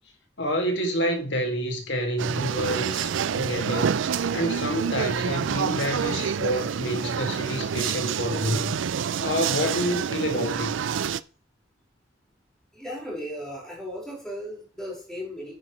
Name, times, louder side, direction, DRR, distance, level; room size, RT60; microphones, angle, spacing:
voice 1, 0.4-4.0 4.3-8.7 9.2-10.7, equal, 65° left, 2.2 m, -28 dB
sound 1, 2.2-11.2, right 7 dB, 85° right, 0.4 m, -27 dB
voice 2, 12.7-15.5, equal, 5° left, 5.1 m, -36 dB
9.7 x 9.7 x 3.2 m
head